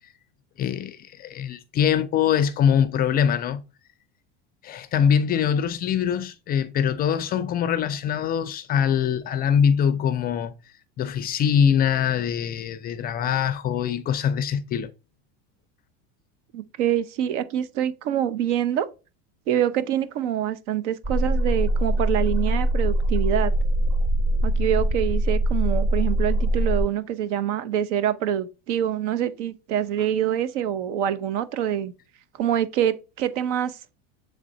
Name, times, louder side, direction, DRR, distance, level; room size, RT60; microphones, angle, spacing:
voice 1, 0.6-3.6 4.6-10.5 11.0-14.9, left 8 dB, 25° left, 0.4 m, -23 dB
voice 2, 16.5-18.9 19.5-23.5 24.4-31.9 32.3-33.8, right 10 dB, 75° right, 0.8 m, -25 dB
sound 1, 21.0-26.8, right 1 dB, 35° right, 2.2 m, -22 dB
7.4 x 3.3 x 3.9 m
supercardioid pair, 140°, 36 cm